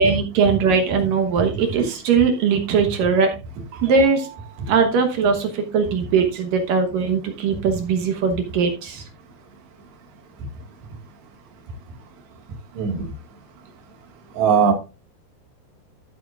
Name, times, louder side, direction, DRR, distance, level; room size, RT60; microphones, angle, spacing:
voice 1, 0.0-3.4 3.7-9.0, right 5 dB, 65° right, 2.4 m, -20 dB
voice 2, 14.4-14.7, right 6 dB, 85° right, 4.0 m, -18 dB
13.0 x 7.9 x 2.4 m
omnidirectional pair, 4.9 m